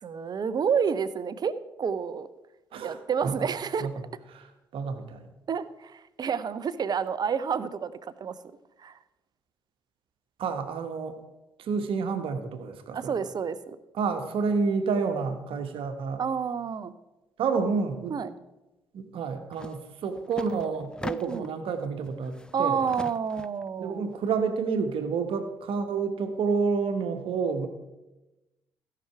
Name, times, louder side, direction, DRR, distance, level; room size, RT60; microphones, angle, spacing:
voice 1, 0.0-2.3 2.8-3.9 5.5-8.4 8.8-9.0 12.9-13.8 16.2-16.9 18.1-18.3 21.3-21.5 22.5-24.0, right 6 dB, 40° right, 15 dB, 0.6 m, -29 dB
voice 2, 2.7-3.5 3.8-3.9 4.3-5.3 10.4-11.2 11.6-13.2 13.9-16.2 17.4-18.2 18.9-22.8 23.8-27.7, right 5 dB, 55° right, 7 dB, 1.2 m, -29 dB
sound 1, 19.5-19.8 20.1-21.6 22.1-23.6, left 1 dB, 10° left, 0.4 m, -40 dB
16.0 x 5.9 x 4.7 m, 1.0 s
figure-of-eight pair, 45°, 11 cm